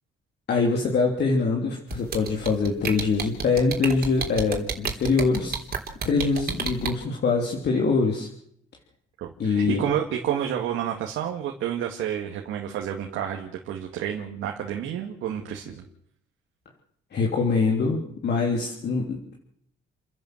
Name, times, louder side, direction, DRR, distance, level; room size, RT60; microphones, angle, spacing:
voice 1, 0.5-5.6 6.0-8.3 9.4-9.8 17.1-19.3, left 4 dB, 55° left, 0 dB, 3.3 m, -24 dB
sound 1, 1.9-6.9, right 5 dB, 50° right, 3.7 m, -29 dB
voice 2, 9.2-15.8, right 9 dB, 90° right, 2 dB, 2.1 m, -30 dB
29.5 x 11.0 x 7.9 m, 0.71 s
cardioid pair, 90°, 20 cm